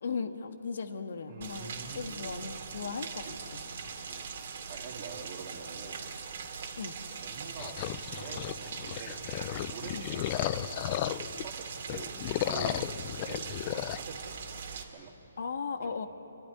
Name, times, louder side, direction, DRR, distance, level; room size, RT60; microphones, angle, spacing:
voice 1, 0.0-3.3 3.5-3.6 6.7-6.9 9.9-10.1 15.4-16.1, left 5 dB, 65° left, 7 dB, 1.5 m, -37 dB
voice 2, 1.3-2.5 2.8-3.6 4.1-6.0 7.2-12.9 13.2-14.4 14.9-15.1 15.8-16.1, right 5 dB, 35° right, 2 dB, 2.6 m, -46 dB
Rain, 1.4-14.8, right 6 dB, 50° right, 2.6 m, -41 dB
sound 1, 7.6-11.4 11.8-14.0, left 13 dB, 30° left, 0.5 m, -34 dB
29.0 x 12.5 x 9.8 m, 3.0 s
hypercardioid pair, 160°, 0 cm